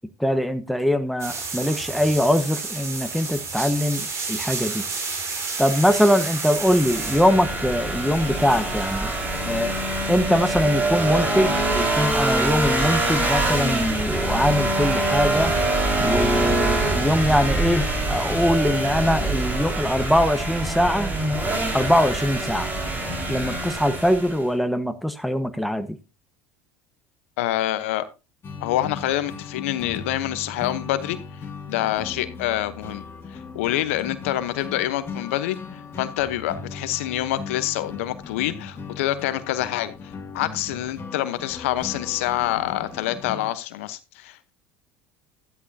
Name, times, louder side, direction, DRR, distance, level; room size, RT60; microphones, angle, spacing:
voice 1, 0.2-4.8 5.6-9.1 9.4-9.7 10.1-15.5 16.0-21.1 21.7-22.7 23.3-25.9, equal, ahead, 1.2 m, -22 dB
sound 1, 1.2-10.3, right 4 dB, 45° right, 4.2 m, -32 dB
sound 2, 6.6-24.5, right 2 dB, 25° right, 4.8 m, -24 dB
voice 2, 27.4-28.0 28.6-31.2 31.7-33.0 33.5-35.6 36.0-39.9 40.3-44.5, left 14 dB, 75° left, 1.0 m, -26 dB
sound 3, 28.4-43.5, left 5 dB, 35° left, 2.3 m, -38 dB
13.0 x 11.0 x 2.8 m
hypercardioid pair, 75°, 7 cm